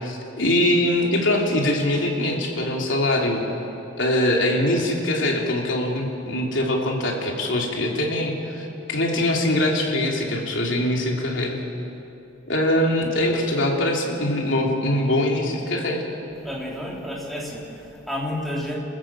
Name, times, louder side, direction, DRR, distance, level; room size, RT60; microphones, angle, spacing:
voice 1, 0.0-3.5 4.0-11.6 12.5-16.1, left 1 dB, 75° left, 0 dB, 3.3 m, -23 dB
voice 2, 16.4-18.8, left 1 dB, ahead, -3 dB, 3.7 m, -31 dB
28.5 x 14.5 x 7.5 m, 2.9 s
head